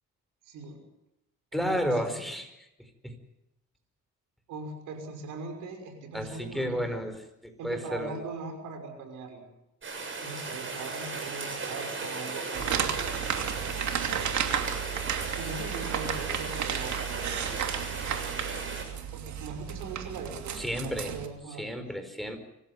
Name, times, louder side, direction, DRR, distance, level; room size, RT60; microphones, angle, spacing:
voice 1, 0.4-0.8 1.5-2.2 4.5-6.9 7.6-9.5 10.2-13.5 15.3-17.2 19.1-21.7, right 3 dB, 90° right, 5 dB, 5.9 m, -40 dB
voice 2, 1.5-2.5 3.0-3.1 6.1-8.2 20.5-21.1 21.6-22.4, equal, ahead, 8 dB, 4.6 m, -32 dB
Rain, 9.8-18.8, right 3 dB, 40° right, 7.8 m, -36 dB
sound 1, 12.5-21.3, right 9 dB, 70° right, 2.9 m, -33 dB
25.5 x 15.5 x 9.5 m, 0.89 s
cardioid pair, 90°, 30 cm